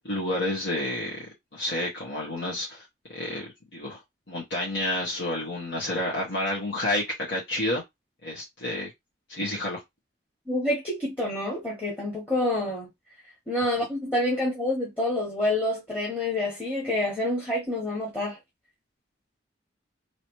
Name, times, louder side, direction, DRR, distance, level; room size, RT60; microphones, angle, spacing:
voice 1, 0.0-1.2 1.5-2.8 3.1-4.0 4.3-7.8 8.2-8.9 9.3-9.8, left 1 dB, 65° left, 1.3 m, -30 dB
voice 2, 10.5-12.9 13.5-18.4, left 1 dB, 10° left, 1.1 m, -27 dB
3.1 x 2.9 x 3.1 m
head